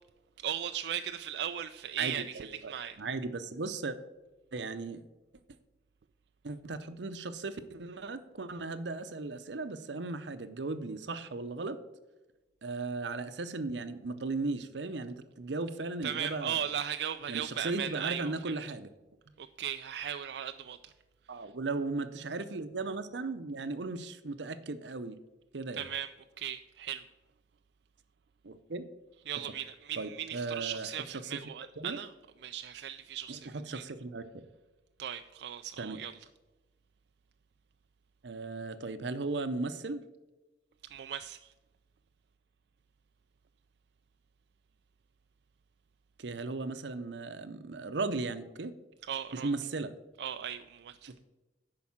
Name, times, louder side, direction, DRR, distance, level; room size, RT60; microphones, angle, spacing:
voice 1, 0.4-3.0 16.0-18.5 19.4-20.9 25.8-26.1 26.4-27.0 29.3-32.1 32.4-33.8 35.0-36.1 40.9-41.5 49.1-49.5 50.2-51.1, right 9 dB, 70° right, 0.3 m, -37 dB
voice 2, 2.0-2.7 3.0-4.0 4.5-5.0 6.4-11.8 12.6-16.6 17.3-18.9 21.3-25.2 25.5-25.9 28.4-28.9 30.0-31.4 31.8-32.0 33.3-34.4 35.8-36.0 38.2-40.0 46.2-48.7 49.3-49.9 51.1-51.2, right 3 dB, 90° right, 0.7 m, -36 dB
10.5 x 4.8 x 7.2 m
head